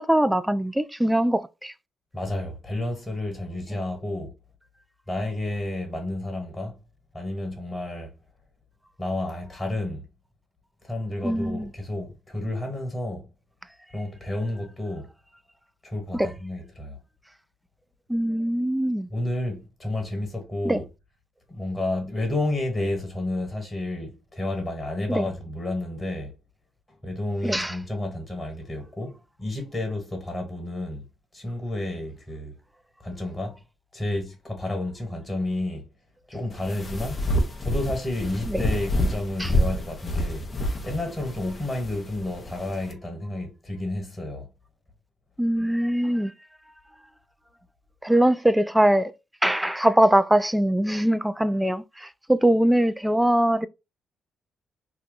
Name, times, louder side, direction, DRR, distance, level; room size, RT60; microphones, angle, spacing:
voice 1, 0.0-1.7 11.2-11.7 16.1-16.3 18.1-19.1 20.7-20.8 25.1-25.3 27.4-27.8 38.5-38.6 39.4-39.5 45.4-46.3 48.0-49.1 49.4-53.7, right 1 dB, 5° right, 0.3 m, -22 dB
voice 2, 2.1-4.3 5.1-6.7 7.1-8.1 9.0-10.1 10.8-13.3 13.9-15.1 15.8-17.0 19.1-20.8 21.5-26.3 27.0-31.0 31.3-32.6 33.0-33.6 33.9-35.8 36.3-37.2 37.6-40.5 40.8-44.4, left 1 dB, 15° left, 1.5 m, -31 dB
sound 1, 36.5-42.9, left 1 dB, 35° left, 0.7 m, -28 dB
2.8 x 2.2 x 3.9 m
cardioid pair, 90°, 0 cm